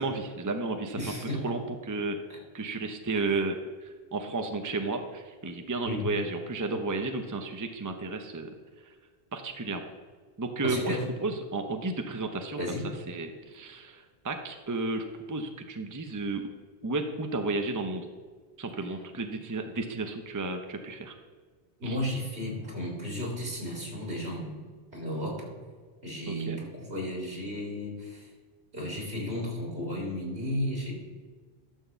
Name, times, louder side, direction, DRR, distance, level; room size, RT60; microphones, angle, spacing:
voice 1, 0.0-1.0 1.4-2.2 2.5-8.5 8.8-8.9 9.3-9.9 10.4-12.6 13.1-16.5 16.8-18.1 18.6-21.1 21.8-22.0 26.3-26.6, right 3 dB, 20° right, 5 dB, 0.7 m, -33 dB
voice 2, 1.0-1.5 2.3-2.4 5.8-6.1 10.6-11.0 12.6-12.8 21.8-24.6 24.9-25.5 26.0-28.3 28.7-30.9, left 1 dB, 75° right, -3 dB, 3.7 m, -33 dB
12.5 x 4.6 x 7.0 m, 1.5 s
omnidirectional pair, 1.1 m